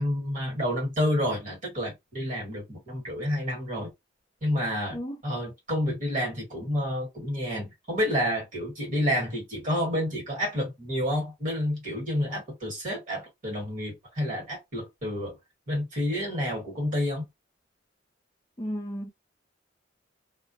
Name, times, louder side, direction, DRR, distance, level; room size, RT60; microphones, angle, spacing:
voice 1, 0.0-3.9 4.4-5.0 5.2-15.4 15.7-17.3, equal, 40° right, 1.3 m, -29 dB
voice 2, 18.6-19.1, equal, 20° left, 0.4 m, -33 dB
2.2 x 2.1 x 2.6 m
head